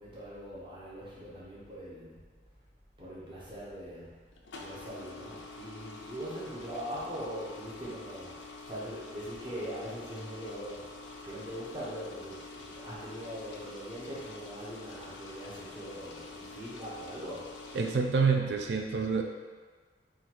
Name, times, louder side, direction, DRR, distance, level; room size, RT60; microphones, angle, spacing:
voice 1, 0.0-2.3 3.0-4.2 4.6-8.4 8.6-10.9 11.2-17.5, equal, 25° right, -8 dB, 0.9 m, -41 dB
sound 1, 4.3-17.9, left 3 dB, 90° left, 0.5 m, -47 dB
voice 2, 17.7-19.2, right 5 dB, 70° right, 3 dB, 0.3 m, -27 dB
4.0 x 2.5 x 4.5 m, 1.5 s
head